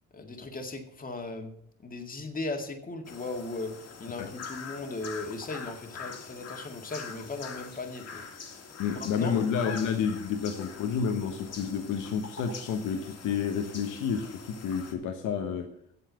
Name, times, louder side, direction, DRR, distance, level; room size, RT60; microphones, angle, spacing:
voice 1, 0.1-1.5 1.8-3.7 4.0-8.3 8.6-9.3, left 3 dB, 30° left, 4 dB, 2.0 m, -37 dB
sound 1, 3.0-14.9, left 5 dB, 55° left, 2.1 m, -44 dB
voice 2, 8.8-15.7, left 7 dB, 85° left, 5 dB, 1.2 m, -30 dB
8.0 x 7.4 x 7.9 m, 0.70 s
cardioid pair, 90°, 30 cm